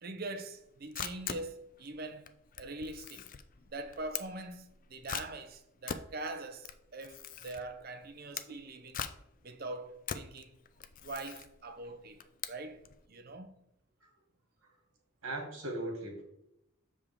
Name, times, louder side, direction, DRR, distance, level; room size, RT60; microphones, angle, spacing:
voice 1, 0.0-3.2 3.7-7.2 7.4-9.0 9.4-10.6 11.0-12.2 12.5-13.6, right 2 dB, 45° right, 0.6 m, -43 dB
Camera, 0.6-13.0, left 8 dB, 40° left, 0.4 m, -43 dB
voice 2, 15.2-16.2, right 1 dB, 75° right, 2.1 m, -38 dB
6.6 x 5.0 x 3.6 m
head